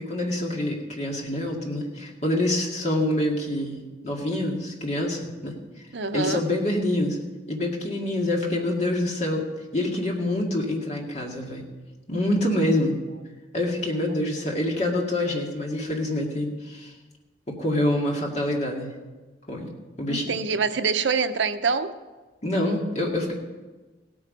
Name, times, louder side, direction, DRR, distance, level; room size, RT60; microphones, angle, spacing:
voice 1, 0.0-5.6 6.1-7.2 7.5-9.4 9.7-11.6 12.1-13.0 13.5-16.9 17.5-18.9 19.5-19.7 20.0-20.2 22.4-23.3, left 1 dB, 40° left, 0 dB, 2.2 m, -26 dB
voice 2, 5.9-6.4 20.1-21.9, right 5 dB, 80° right, 10 dB, 0.7 m, -25 dB
17.0 x 8.7 x 5.4 m, 1.3 s
head